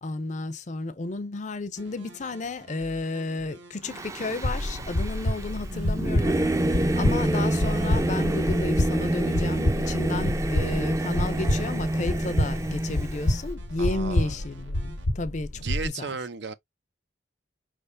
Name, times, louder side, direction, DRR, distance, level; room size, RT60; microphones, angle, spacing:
voice 1, 0.0-16.1, left 2 dB, 40° left, 0.5 m, -33 dB
sound 1, 1.8-15.1, right 1 dB, 85° right, 1.4 m, -49 dB
Singing / Musical instrument, 3.9-13.4, right 1 dB, 15° right, 0.5 m, -27 dB
sound 2, 4.4-15.9, left 1 dB, 85° left, 0.9 m, -28 dB
voice 2, 13.8-14.4 15.5-16.5, right 5 dB, 70° right, 0.6 m, -34 dB
4.9 x 3.3 x 2.5 m
head